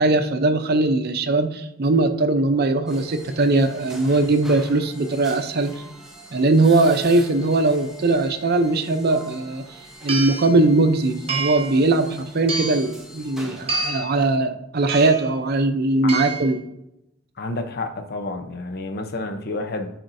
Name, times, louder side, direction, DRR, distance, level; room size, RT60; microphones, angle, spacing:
voice 1, 0.0-5.7 6.3-9.6 10.0-16.6, right 2 dB, 50° right, 0.6 m, -20 dB
sound 1, 2.9-13.9, right 1 dB, 5° right, 0.9 m, -44 dB
sound 2, 9.3-9.4 10.1-10.5 11.3-11.8 12.5-12.9 13.7-14.2 14.9-15.3 16.1-16.5, right 4 dB, 30° right, 1.3 m, -27 dB
voice 2, 17.4-19.9, left 2 dB, 55° left, 0.7 m, -29 dB
10.0 x 4.3 x 2.6 m
head